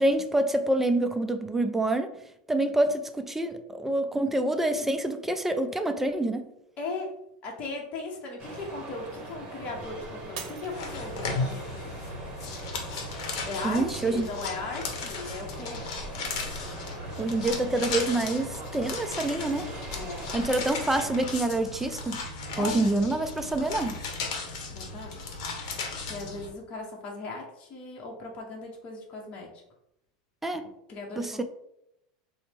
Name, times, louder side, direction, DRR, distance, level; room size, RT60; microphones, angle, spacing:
voice 1, 0.0-2.2 2.5-6.5 13.6-14.4 17.2-19.7 20.3-22.3 22.6-24.0 30.4-30.7 31.2-31.4, right 2 dB, 10° right, 0.3 m, -27 dB
voice 2, 6.8-7.1 7.4-11.9 13.4-16.0 19.9-20.4 22.6-22.8 24.7-25.2 26.1-29.5 30.9-31.4, left 3 dB, 35° left, 0.8 m, -38 dB
sound 1, 8.4-21.3, right 2 dB, 25° right, 1.0 m, -41 dB
Shatter, 10.4-11.6 12.2-12.6 13.2-13.3, right 7 dB, 70° right, 0.6 m, -43 dB
sound 2, 10.7-26.5, left 4 dB, 65° left, 0.8 m, -36 dB
4.1 x 2.0 x 3.3 m
supercardioid pair, 115°, 4 cm